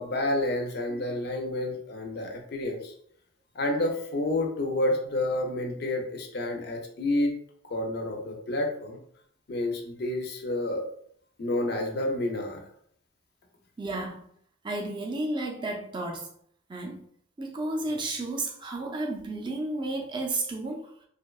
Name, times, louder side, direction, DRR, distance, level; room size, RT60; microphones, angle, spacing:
voice 1, 0.0-2.9 3.6-7.3 7.6-9.0 9.5-10.8 11.4-12.6, left 1 dB, 50° left, 0.4 m, -29 dB
voice 2, 13.8-14.3 14.6-16.3 16.7-17.1 17.4-20.9, right 2 dB, 25° right, 0.3 m, -32 dB
2.6 x 2.1 x 2.3 m
head